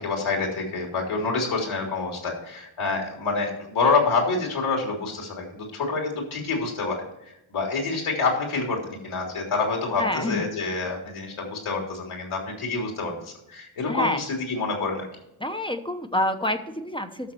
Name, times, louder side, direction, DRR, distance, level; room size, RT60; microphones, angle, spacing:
voice 1, 0.0-7.0 7.5-15.1, left 4 dB, 80° left, 1 dB, 3.5 m, -27 dB
voice 2, 10.0-10.5 13.9-14.2 15.4-17.3, left 1 dB, 10° left, 7 dB, 0.8 m, -27 dB
13.0 x 6.5 x 4.5 m, 0.85 s
wide cardioid pair, 150°, 49 cm